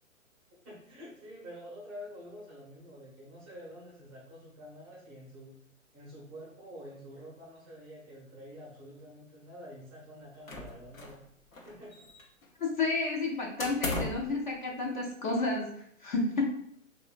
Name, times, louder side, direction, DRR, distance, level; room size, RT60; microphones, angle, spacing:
voice 1, 0.6-5.5 5.9-11.2 11.6-11.9, equal, 15° right, -6 dB, 0.5 m, -48 dB
sound 1, 10.5-11.3 11.5-12.5 13.6-14.3, left 2 dB, 85° left, 0.7 m, -36 dB
voice 2, 12.6-16.5, left 3 dB, 40° left, -1 dB, 0.5 m, -31 dB
3.6 x 2.1 x 2.4 m, 0.70 s
figure-of-eight pair, 125°, 40 cm